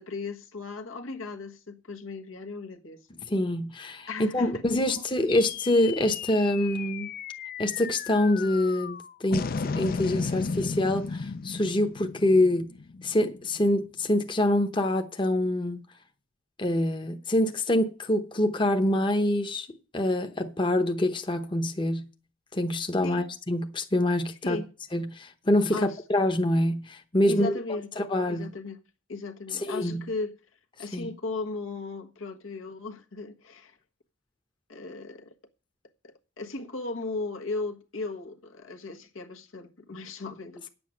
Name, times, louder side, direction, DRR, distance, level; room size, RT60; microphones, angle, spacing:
voice 1, 0.0-3.1 4.1-4.5 4.8-5.1 23.0-23.3 24.4-24.7 25.7-26.0 27.2-27.9 28.3-28.8 29.1-30.3 30.8-33.8 34.7-35.3 36.0-40.7, left 3 dB, 85° left, 1.4 m, -36 dB
voice 2, 3.3-7.1 7.6-9.5 9.8-12.7 13.0-15.8 16.6-19.7 19.9-22.0 22.5-24.6 24.9-27.5 28.0-28.5 29.5-30.0 30.9-31.1, left 1 dB, 25° left, 0.8 m, -25 dB
sound 1, 5.3-13.9, left 4 dB, 45° left, 0.4 m, -34 dB
9.8 x 7.8 x 6.3 m
head